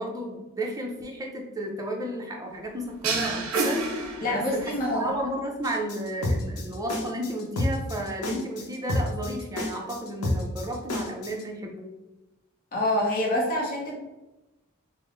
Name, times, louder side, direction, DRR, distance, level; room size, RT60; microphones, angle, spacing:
voice 1, 0.0-3.8 4.3-11.9, right 1 dB, 15° right, 0 dB, 0.5 m, -33 dB
sound 1, 3.0-4.8, right 3 dB, 75° right, 0.5 m, -28 dB
voice 2, 4.2-5.1 12.7-13.9, left 1 dB, 45° left, -2 dB, 0.7 m, -26 dB
sound 2, 5.6-11.4, left 1 dB, 80° left, 0.7 m, -29 dB
3.6 x 2.0 x 3.7 m, 1.0 s
head